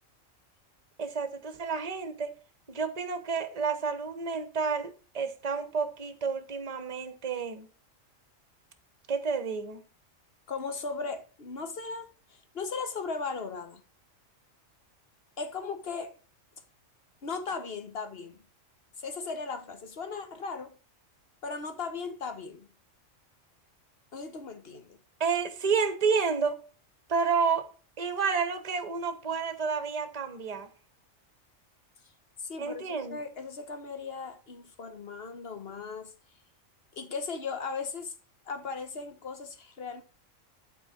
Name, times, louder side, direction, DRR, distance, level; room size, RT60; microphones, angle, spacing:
voice 1, 1.0-2.3 2.7-7.7 9.1-9.8 25.2-26.6 27.1-27.7 28.0-30.7 32.6-33.2, right 5 dB, 30° right, 1.0 m, -30 dB
voice 2, 10.5-13.8 15.4-16.1 17.2-18.4 19.0-20.8 21.4-22.7 24.1-25.0 32.4-36.1 36.9-38.1 38.5-40.0, left 4 dB, 50° left, 1.3 m, -37 dB
12.0 x 4.6 x 4.3 m
omnidirectional pair, 1.4 m